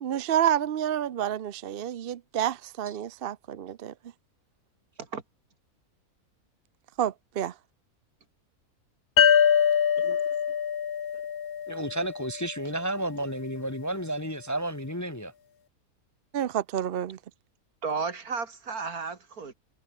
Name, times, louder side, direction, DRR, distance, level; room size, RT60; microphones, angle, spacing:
voice 1, 0.0-3.9 7.0-7.5 16.3-17.2, right 10 dB, 55° right, 0.6 m, -29 dB
sound 1, 9.2-12.6, left 8 dB, 45° left, 0.9 m, -24 dB
voice 2, 10.0-10.3 17.8-19.5, right 5 dB, 75° right, 2.9 m, -34 dB
voice 3, 11.7-15.3, right 1 dB, 15° left, 1.0 m, -32 dB
omnidirectional pair, 1.6 m